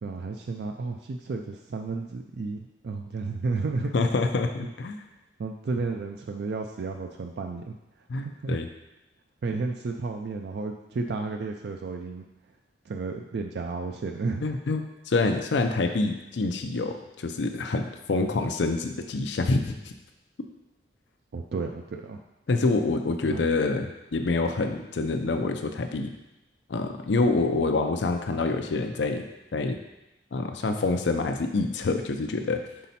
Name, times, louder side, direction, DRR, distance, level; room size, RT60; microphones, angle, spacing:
voice 1, 0.0-3.9 5.4-7.8 8.1-8.6 9.4-12.2 12.9-14.4 21.3-22.2 23.2-23.4, right 3 dB, 65° right, 3 dB, 0.4 m, -32 dB
voice 2, 3.9-5.0 8.1-8.7 14.4-19.9 22.5-26.1 26.7-29.2 29.5-29.8 30.3-32.6, left 3 dB, 85° left, 5 dB, 0.5 m, -26 dB
5.6 x 4.1 x 4.1 m, 0.97 s
head